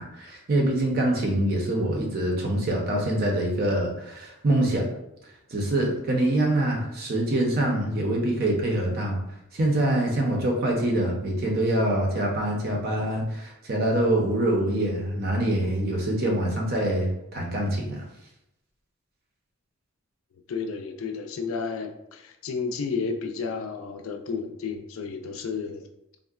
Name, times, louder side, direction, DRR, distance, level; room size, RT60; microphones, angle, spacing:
voice 1, 0.0-4.8 5.5-9.2 9.5-18.1, right 1 dB, 45° right, 0 dB, 0.6 m, -25 dB
voice 2, 20.5-25.9, left 5 dB, 75° left, 5 dB, 0.4 m, -32 dB
3.6 x 2.1 x 2.3 m, 0.84 s
head